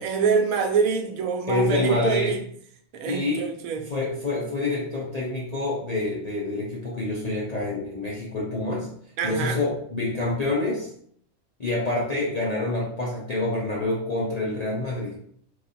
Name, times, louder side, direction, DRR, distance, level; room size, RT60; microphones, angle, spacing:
voice 1, 0.0-2.4 2.9-3.9 9.2-9.6, right 5 dB, 75° right, 4 dB, 1.0 m, -25 dB
voice 2, 1.5-2.4 3.1-3.4 3.9-8.9 9.2-10.9 11.6-15.2, left 2 dB, 50° left, -5 dB, 0.4 m, -27 dB
3.2 x 2.4 x 4.0 m, 0.64 s
omnidirectional pair, 1.5 m